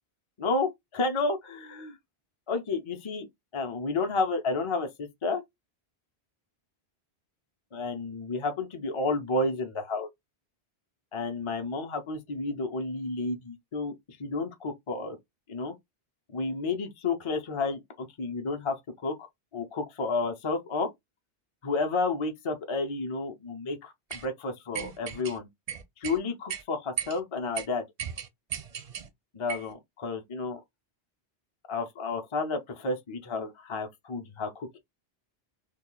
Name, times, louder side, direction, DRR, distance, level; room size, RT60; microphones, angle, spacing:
voice 1, 0.4-2.0 2.5-3.3 3.5-5.4 7.7-10.1 11.1-13.9 14.2-15.2 15.5-15.7 16.3-19.3 19.5-20.9 21.6-25.5 26.0-27.8 29.3-30.6 31.7-34.8, left 3 dB, 35° left, 0.5 m, -31 dB
sound 1, 24.1-24.3 24.7-25.4 25.7-26.2 26.5-26.6 27.0-27.2 27.6-27.7 28.0-29.1 29.5-29.7, right 8 dB, 45° right, 0.5 m, -35 dB
3.0 x 2.3 x 3.8 m
omnidirectional pair, 1.1 m